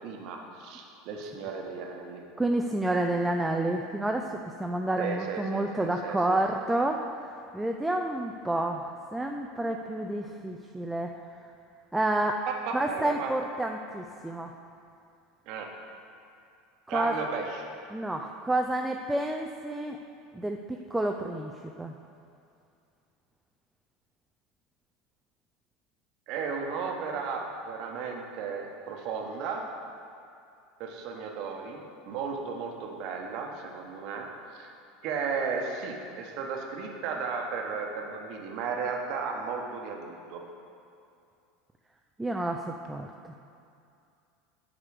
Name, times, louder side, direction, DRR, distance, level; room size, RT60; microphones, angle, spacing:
voice 1, 0.0-2.2 5.0-6.4 12.5-13.3 15.5-15.7 16.9-17.7 26.3-29.7 30.8-34.7 35.0-40.4, right 5 dB, 50° right, 2 dB, 1.1 m, -35 dB
voice 2, 2.4-7.3 7.5-11.1 11.9-12.4 12.7-14.5 16.9-17.1 17.9-20.0 20.3-21.5 21.8-22.0 42.2-43.1, right 1 dB, 10° right, 3 dB, 0.4 m, -29 dB
9.6 x 5.0 x 4.9 m, 2.5 s
figure-of-eight pair, 75°, 0 cm